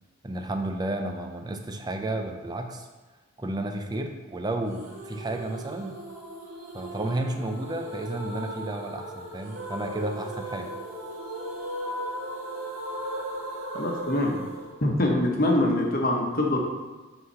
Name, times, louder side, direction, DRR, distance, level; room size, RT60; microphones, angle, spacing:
voice 1, 0.2-2.9 3.4-6.0 6.7-10.7 13.1-13.2, right 1 dB, 20° right, 4 dB, 0.5 m, -32 dB
sound 1, 4.7-15.7, right 1 dB, 70° right, 2.0 m, -37 dB
voice 2, 13.7-14.4 14.8-16.6, left 1 dB, 45° left, 0 dB, 1.2 m, -24 dB
8.1 x 3.9 x 5.5 m, 1.2 s
head